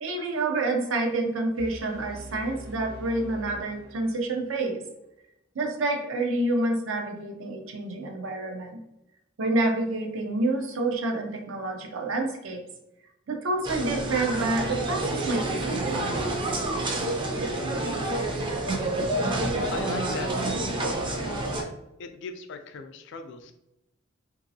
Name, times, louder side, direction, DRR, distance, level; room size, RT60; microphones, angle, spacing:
voice 1, 0.0-4.8 5.6-8.8 9.4-12.6 13.3-16.2, right 2 dB, 85° right, 3 dB, 0.6 m, -28 dB
sound 1, 1.6-4.6, right 1 dB, 70° right, 1.2 m, -43 dB
sound 2, 13.6-21.6, right 2 dB, 25° right, 0.4 m, -28 dB
voice 2, 19.7-21.3 22.0-23.5, left 4 dB, 60° left, 7 dB, 0.4 m, -40 dB
2.9 x 2.7 x 2.6 m, 0.89 s
head